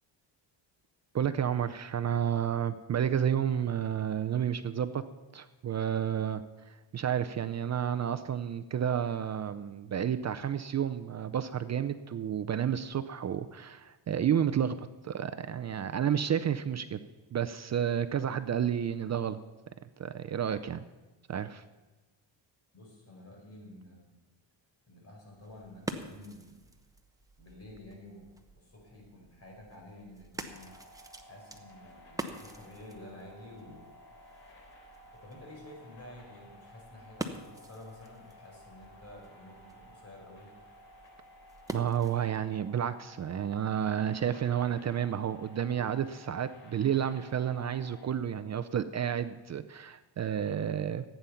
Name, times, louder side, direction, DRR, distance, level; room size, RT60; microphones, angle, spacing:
voice 1, 1.1-5.0 5.3-17.0 17.3-19.4 20.0-20.8 21.3-21.6 41.7-51.0, right 9 dB, 35° right, 10 dB, 0.6 m, -31 dB
voice 2, 22.7-24.2 24.9-26.6 27.4-28.3 28.6-30.8 31.2-33.8 35.1-40.5, left 1 dB, 30° left, 0 dB, 5.1 m, -50 dB
sound 1, 25.3-42.4, right 1 dB, 10° right, 1.1 m, -46 dB
sound 2, 30.5-48.1, left 1 dB, 75° left, 4.2 m, -55 dB
15.0 x 9.2 x 5.7 m, 1.2 s
cardioid pair, 110°, 46 cm